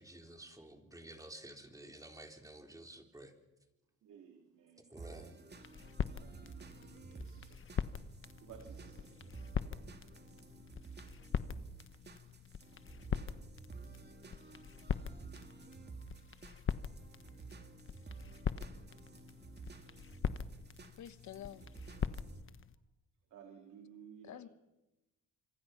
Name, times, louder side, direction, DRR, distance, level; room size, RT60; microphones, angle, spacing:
voice 1, 0.0-3.3 4.9-5.4, right 1 dB, 10° right, 4 dB, 3.8 m, -52 dB
voice 2, 4.0-5.0 5.3-5.8 6.1-7.6 7.9-8.1 8.4-9.5 23.3-24.4, right 7 dB, 80° right, 2 dB, 3.6 m, -57 dB
sound 1, 5.0-22.4, right 4 dB, 35° right, 2.6 m, -53 dB
sound 2, 5.5-22.7, left 7 dB, 45° left, 1.2 m, -42 dB
voice 3, 21.0-21.7 24.2-24.5, left 11 dB, 70° left, 13 dB, 1.3 m, -48 dB
26.5 x 24.5 x 5.9 m, 0.99 s
cardioid pair, 90°, 30 cm